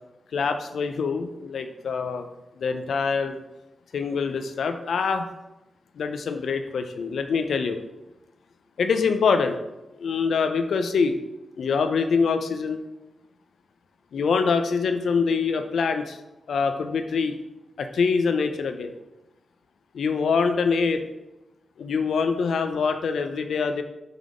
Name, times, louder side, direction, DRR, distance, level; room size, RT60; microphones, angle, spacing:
voice 1, 0.3-2.3 2.6-3.4 3.9-5.3 6.0-7.8 8.8-9.6 10.0-11.2 11.6-12.8 14.1-16.2 16.5-17.4 17.8-18.9 19.9-21.0 21.8-23.8, left 5 dB, 80° left, 7 dB, 0.5 m, -24 dB
5.7 x 3.5 x 4.9 m, 0.97 s
cardioid pair, 50°, 0 cm